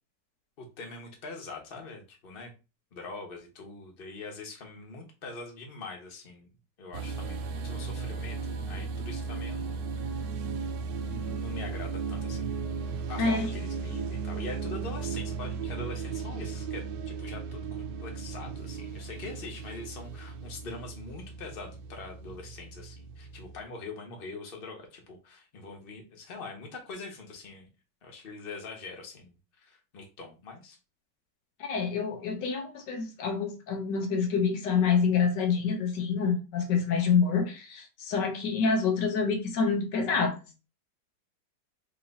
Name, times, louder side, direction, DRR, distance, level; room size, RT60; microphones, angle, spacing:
voice 1, 0.6-2.5 2.9-6.5 6.8-10.3 10.8-12.5 13.1-27.7 28.0-30.8, left 3 dB, 35° left, 1.1 m, -43 dB
sound 1, 6.9-23.6, right 5 dB, 85° right, 1.3 m, -36 dB
voice 2, 13.2-13.5 31.6-40.4, left 5 dB, 80° left, 1.5 m, -27 dB
3.7 x 3.0 x 4.1 m
omnidirectional pair, 1.9 m